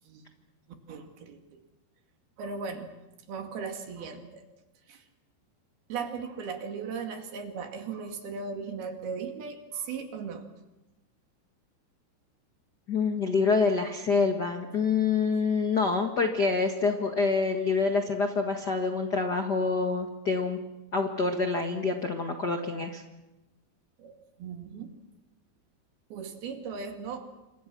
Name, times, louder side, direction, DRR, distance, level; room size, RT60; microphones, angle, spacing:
voice 1, 0.9-1.6 2.4-2.9 3.3-4.4 4.9-5.0 5.9-10.5 24.0-24.9 26.1-27.3, right 5 dB, 65° right, 5 dB, 4.1 m, -37 dB
voice 2, 12.9-20.6 20.9-23.0, left 4 dB, 75° left, 4 dB, 0.9 m, -26 dB
29.0 x 26.0 x 6.2 m, 1.0 s
omnidirectional pair, 4.8 m